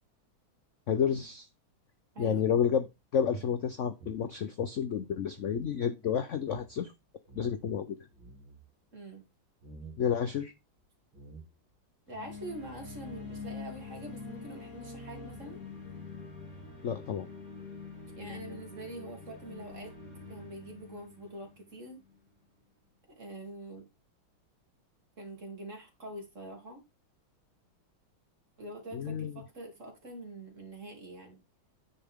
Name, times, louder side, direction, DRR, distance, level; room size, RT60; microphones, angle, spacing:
voice 1, 0.9-1.5 2.2-2.8 3.1-6.9 7.4-8.0 10.0-10.5 16.8-17.3 28.9-29.4, left 8 dB, 70° left, 0.7 m, -30 dB
voice 2, 2.1-2.5 8.9-9.2 12.1-15.6 18.2-19.9 20.3-22.0 23.1-23.9 25.2-26.8 28.6-31.4, right 1 dB, 35° right, 3.1 m, -45 dB
sound 1, 3.3-5.8 6.0-6.1 6.4-6.7 7.3-7.7 8.1-8.6 9.6-10.0 10.8-10.9 11.1-11.7, right 5 dB, 80° right, 2.7 m, -50 dB
sound 2, 12.1-22.1, left 4 dB, 45° left, 3.0 m, -45 dB
10.5 x 6.6 x 3.6 m
omnidirectional pair, 2.2 m